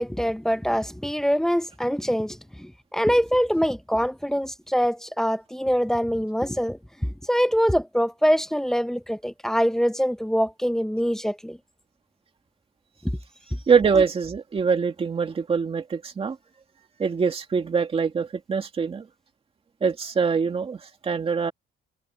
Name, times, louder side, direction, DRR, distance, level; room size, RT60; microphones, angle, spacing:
voice 1, 0.0-11.6, equal, ahead, 0.8 m, -24 dB
voice 2, 13.7-16.4 17.0-19.1 19.8-21.5, right 5 dB, 25° right, 2.3 m, -24 dB
cardioid pair, 175°, 21 cm